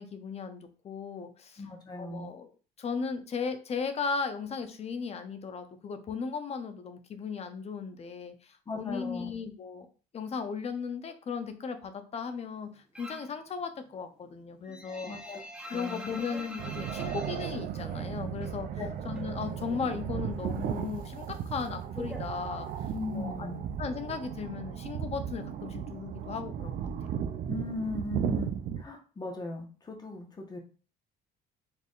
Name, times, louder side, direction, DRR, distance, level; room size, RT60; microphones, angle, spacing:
voice 1, 0.0-1.6 2.0-2.5 2.8-9.9 10.1-15.1 15.7-18.7 19.0-22.7 23.1-23.5 23.8-26.9, left 5 dB, 40° left, 9 dB, 0.6 m, -36 dB
voice 2, 1.6-2.3 8.7-9.3 14.7-15.4 15.7-16.1 18.7-18.9 22.9-23.6 27.5-30.6, left 3 dB, 25° left, 2 dB, 1.1 m, -38 dB
sound 1, 12.9-13.4 13.7-18.6 18.9-19.9 20.2-23.0, equal, 5° right, 0.8 m, -45 dB
sound 2, 16.6-28.8, right 9 dB, 55° right, 0.4 m, -35 dB
4.4 x 3.4 x 2.5 m, 0.37 s
cardioid pair, 110°, 17 cm